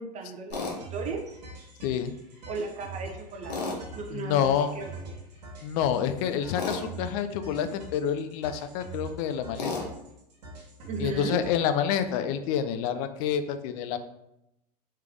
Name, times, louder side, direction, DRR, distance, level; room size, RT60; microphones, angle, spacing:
voice 1, 0.0-1.4 2.5-3.6 3.9-5.2 10.9-11.4, right 4 dB, 35° right, 3 dB, 0.7 m, -36 dB
Tools, 0.5-0.8 3.5-3.8 6.6-6.8 9.6-9.9, left 3 dB, 90° left, 1.0 m, -31 dB
sound 1, 0.7-11.5, right 3 dB, 85° right, 1.3 m, -44 dB
voice 2, 1.8-2.1 4.1-4.7 5.6-9.7 11.0-14.0, left 8 dB, 60° left, 10 dB, 0.5 m, -28 dB
3.3 x 3.2 x 3.5 m, 0.85 s
hypercardioid pair, 95°, 21 cm